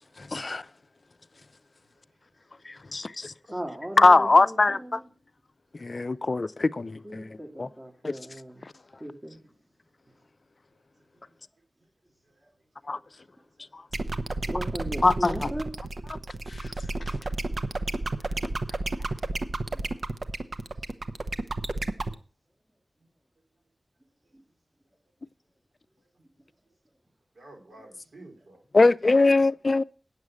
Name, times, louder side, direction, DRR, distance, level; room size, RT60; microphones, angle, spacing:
voice 1, 0.2-0.7 2.6-3.3 4.0-5.0 5.7-7.7 8.0-8.2 8.6-8.7 12.8-13.0 13.7-13.9 15.0-15.5 16.1-16.2 16.5-17.2 28.7-29.8, left 3 dB, 45° left, 0.4 m, -22 dB
voice 2, 3.5-5.0 7.0-8.6 9.0-9.4 14.5-15.7 19.7-19.8 24.3-24.4, right 1 dB, 25° right, 2.4 m, -37 dB
sound 1, 13.9-22.1, right 2 dB, 55° right, 0.8 m, -31 dB
voice 3, 19.6-20.2 21.1-21.3 27.3-28.6, right 2 dB, 80° right, 3.9 m, -53 dB
9.5 x 7.3 x 6.2 m
wide cardioid pair, 100°, 0 cm